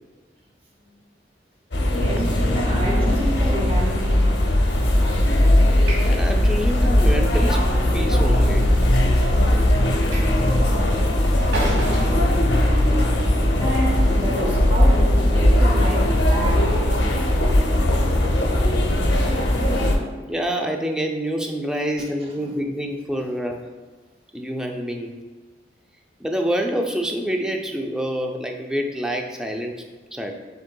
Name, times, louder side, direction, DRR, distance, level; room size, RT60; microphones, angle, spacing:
sound 1, 1.7-19.9, left 1 dB, 65° left, 0.7 m, -19 dB
voice 1, 1.9-4.3 5.0-5.3 13.6-16.8 22.2-22.5, right 1 dB, 30° right, -2 dB, 0.8 m, -29 dB
Train / Sliding door, 3.8-13.1, right 1 dB, 85° right, 1.4 m, -36 dB
voice 2, 5.7-7.7 7.9-8.7 20.3-23.6 24.3-25.1 26.2-29.7 30.1-30.3, equal, 5° right, 2 dB, 0.3 m, -27 dB
6.4 x 3.6 x 2.2 m, 1.3 s
head